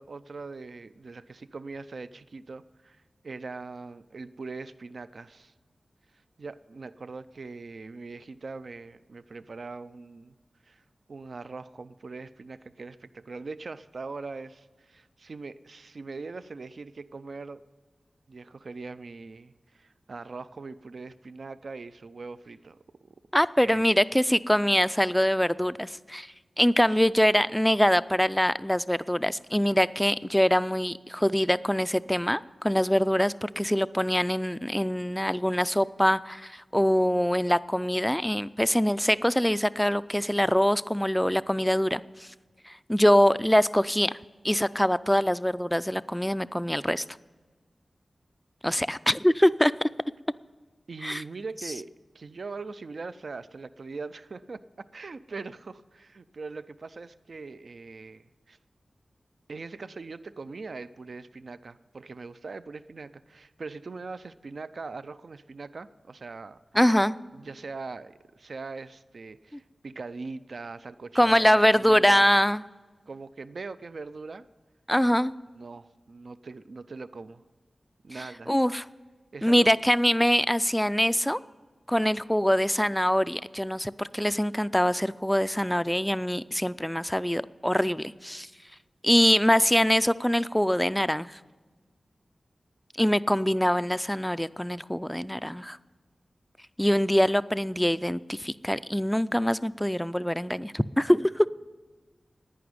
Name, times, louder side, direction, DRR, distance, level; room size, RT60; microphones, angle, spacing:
voice 1, 0.0-5.5 6.4-10.4 10.6-10.8 11.1-17.6 18.3-22.8 23.0-23.2 23.6-23.8 26.9-27.0 50.9-51.9 52.1-58.6 59.5-66.6 67.3-72.3 73.1-74.5 75.6-77.4 78.0-78.5 79.3-79.7, right 4 dB, 65° right, 14 dB, 0.4 m, -41 dB
voice 2, 23.3-26.3 26.6-42.3 42.7-44.1 44.4-47.0 48.6-49.7 51.0-51.2 66.7-67.1 69.5-69.6 71.2-72.7 74.9-75.3 78.5-78.8 79.4-81.4 81.9-88.5 89.0-91.4 93.0-95.8 96.8-101.5, equal, 5° left, 15 dB, 0.3 m, -24 dB
11.0 x 9.5 x 9.5 m, 1.3 s
wide cardioid pair, 105°, 0 cm